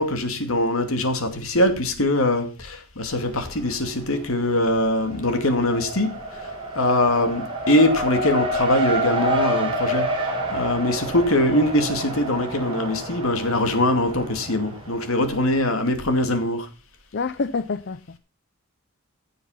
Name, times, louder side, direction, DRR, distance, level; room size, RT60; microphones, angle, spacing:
voice 1, 0.0-6.2 6.8-16.7, left 1 dB, 70° left, 2.5 m, -22 dB
Race car auto racing, 3.1-3.9 4.2-15.5, right 1 dB, 25° right, 4.7 m, -28 dB
voice 2, 17.1-18.2, left 4 dB, 50° left, 0.6 m, -27 dB
15.5 x 7.0 x 5.7 m
head